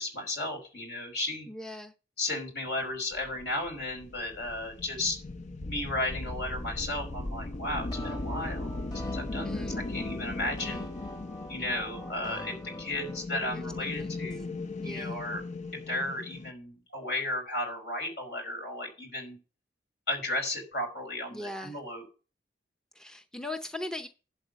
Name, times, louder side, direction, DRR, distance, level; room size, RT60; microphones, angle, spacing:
voice 1, 0.0-1.5 2.2-5.2 5.7-10.9 11.5-14.5 14.8-15.4 15.9-19.4 20.1-22.0, left 1 dB, 65° left, 5.0 m, -34 dB
voice 2, 1.5-1.9 9.4-9.8 13.5-14.2 14.8-15.2 21.3-21.8 22.9-24.1, left 1 dB, 5° left, 0.7 m, -40 dB
sound 1, 3.1-16.5, left 2 dB, 40° left, 0.6 m, -38 dB
sound 2, 7.9-13.2, equal, 25° left, 1.9 m, -44 dB
11.5 x 4.3 x 8.1 m
head